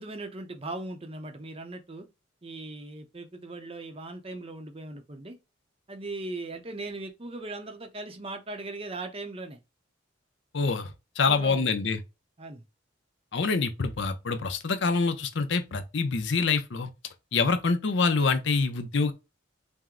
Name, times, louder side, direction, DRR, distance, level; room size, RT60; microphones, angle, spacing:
voice 1, 0.0-2.1 2.4-5.4 5.9-9.6 11.2-11.7 12.4-12.6, right 2 dB, 30° right, 0.6 m, -39 dB
voice 2, 10.5-12.0 13.3-16.9 17.3-19.1, left 4 dB, 65° left, 0.6 m, -26 dB
4.4 x 2.1 x 3.7 m
head